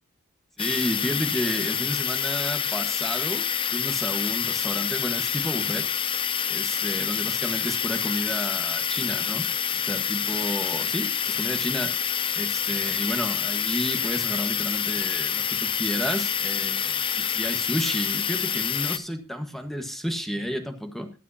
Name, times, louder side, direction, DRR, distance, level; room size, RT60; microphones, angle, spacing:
sound 1, 0.6-19.0, left 8 dB, 25° left, 0.5 m, -27 dB
voice 1, 0.6-5.9 6.5-9.5 9.7-12.0 12.3-21.1, equal, ahead, 6 dB, 1.4 m, -31 dB
21.5 x 7.4 x 2.8 m, 0.32 s
head